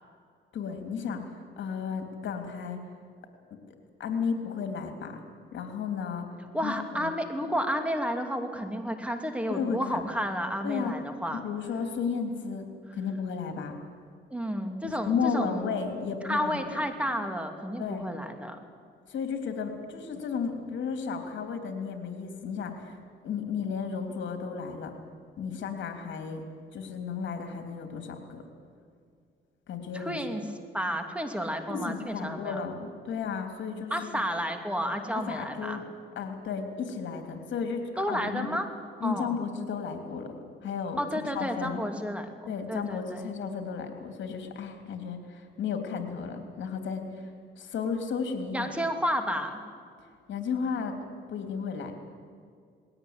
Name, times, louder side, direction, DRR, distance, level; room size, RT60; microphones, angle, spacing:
voice 1, 0.5-1.2 1.6-2.8 4.0-5.2 5.5-6.3 6.6-7.1 9.5-10.0 10.6-10.9 11.3-13.8 14.8-16.8 17.8-18.1 19.1-24.9 25.4-26.4 26.7-28.4 29.7-30.2 31.6-34.2 35.1-35.8 36.1-38.5 39.0-40.3 40.6-41.8 42.5-48.7 50.3-51.0 51.3-51.9, left 6 dB, 70° left, 5 dB, 3.2 m, -33 dB
voice 2, 6.5-11.4 14.3-15.7 16.2-18.6 29.9-30.4 30.7-32.6 33.9-35.8 38.0-38.7 39.0-39.3 41.0-42.3 42.7-43.3 48.5-49.6, equal, 5° right, 5 dB, 2.7 m, -31 dB
20.5 x 17.5 x 9.8 m, 2.2 s
cardioid pair, 90°, 20 cm